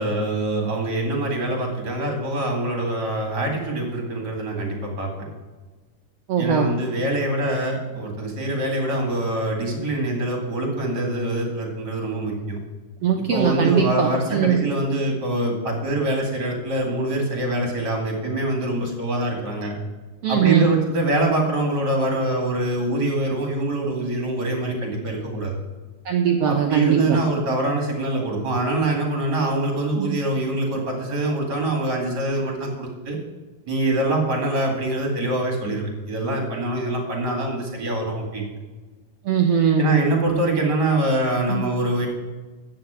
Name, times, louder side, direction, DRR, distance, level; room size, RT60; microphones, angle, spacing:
voice 1, 0.0-5.3 6.4-12.6 13.3-19.7 20.3-25.6 26.4-33.2 33.7-38.5 39.8-42.1, right 1 dB, 35° right, 1 dB, 2.3 m, -24 dB
voice 2, 6.3-6.7 13.0-14.6 20.2-20.7 26.0-27.2 30.0-30.1 39.2-39.9 41.5-41.6, right 7 dB, 80° right, 2 dB, 1.3 m, -20 dB
13.5 x 5.0 x 8.9 m, 1.3 s
omnidirectional pair, 3.9 m